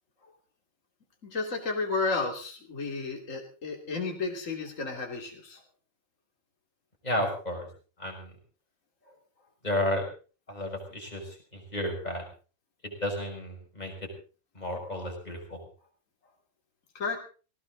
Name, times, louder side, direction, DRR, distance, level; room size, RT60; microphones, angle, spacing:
voice 1, 1.2-5.6 16.9-17.2, left 4 dB, 45° left, 1 dB, 3.3 m, -32 dB
voice 2, 7.0-7.7 8.0-8.3 9.6-10.0 10.5-12.2 12.8-14.1 14.5-15.6, left 1 dB, 20° left, 1 dB, 6.2 m, -32 dB
19.0 x 18.0 x 4.0 m, 0.38 s
omnidirectional pair, 2.0 m